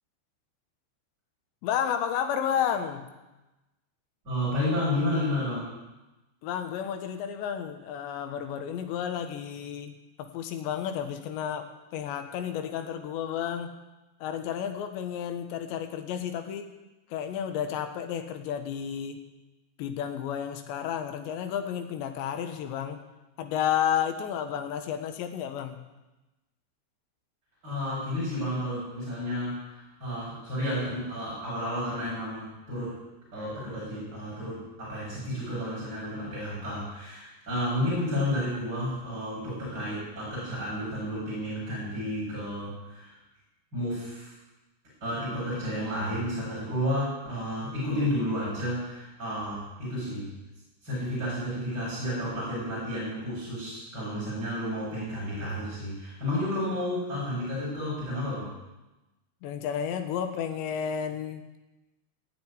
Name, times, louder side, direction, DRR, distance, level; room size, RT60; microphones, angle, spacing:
voice 1, 1.6-3.1 6.4-13.7 14.2-16.7 17.1-19.2 19.8-23.0 23.4-25.8 59.4-61.4, left 9 dB, 85° left, 7 dB, 3.5 m, -31 dB
voice 2, 4.2-5.7 27.6-33.0 33.3-43.2 43.7-44.3 45.0-50.3 50.8-58.5, left 1 dB, 20° right, -10 dB, 7.8 m, -31 dB
17.5 x 7.6 x 9.9 m, 1.0 s
omnidirectional pair, 5.0 m